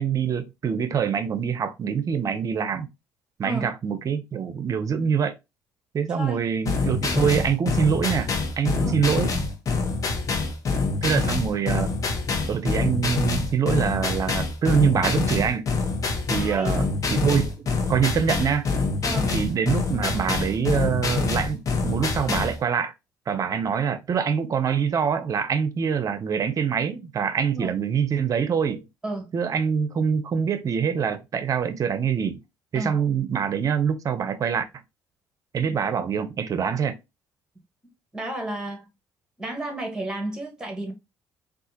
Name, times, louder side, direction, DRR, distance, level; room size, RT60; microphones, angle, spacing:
voice 1, 0.0-2.9 3.4-5.4 5.9-8.3 8.6-9.3 11.0-11.9 12.5-15.7 16.3-18.7 19.3-22.9 23.3-28.8 29.3-32.4 32.7-34.6 35.5-36.9, right 7 dB, 45° right, 0.6 m, -25 dB
voice 2, 6.1-6.5 8.8-9.0 16.3-16.7 19.0-19.3 27.5-27.7 29.0-29.3 32.7-33.0 38.1-38.9 39.4-40.9, right 1 dB, 10° right, 1.6 m, -32 dB
sound 1, 6.7-22.6, left 4 dB, 45° left, 0.9 m, -26 dB
3.7 x 2.4 x 2.8 m
hypercardioid pair, 60°, 8 cm